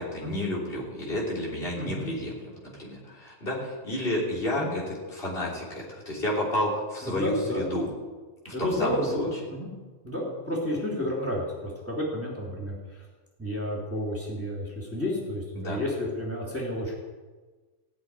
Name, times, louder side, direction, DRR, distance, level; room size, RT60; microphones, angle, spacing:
voice 1, 0.0-7.9 8.5-9.3 15.6-15.8, left 1 dB, 45° left, -4 dB, 3.5 m, -31 dB
voice 2, 1.8-2.1 4.6-4.7 7.0-7.6 8.5-9.7 10.0-13.0 13.4-16.9, left 1 dB, 10° right, -4 dB, 3.1 m, -31 dB
16.0 x 6.1 x 9.7 m, 1.3 s
omnidirectional pair, 1.3 m